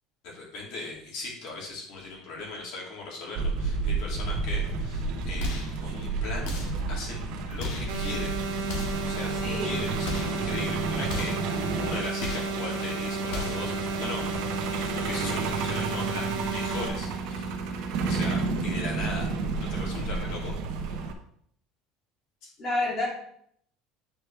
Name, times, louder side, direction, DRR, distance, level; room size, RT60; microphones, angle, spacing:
voice 1, 0.2-6.5 6.9-7.2 7.5-8.3 9.0-11.4 11.7-17.6 18.0-19.3 19.7-20.5 22.4-22.5, left 3 dB, 60° left, -2 dB, 2.6 m, -38 dB
Truck, 3.4-21.1, right 4 dB, 60° right, 1.0 m, -31 dB
sound 1, 5.4-5.8 6.4-6.9 7.6-8.0 8.6-9.1 10.0-10.4 11.1-11.5 12.2-12.6 13.3-13.7, left 3 dB, 90° left, 1.9 m, -35 dB
sound 2, 7.9-16.9, right 3 dB, 85° right, 1.2 m, -32 dB
voice 2, 9.3-9.8 22.6-23.1, left 2 dB, 30° left, -3 dB, 2.5 m, -29 dB
9.6 x 4.6 x 3.4 m, 0.67 s
cardioid pair, 165°, 0 cm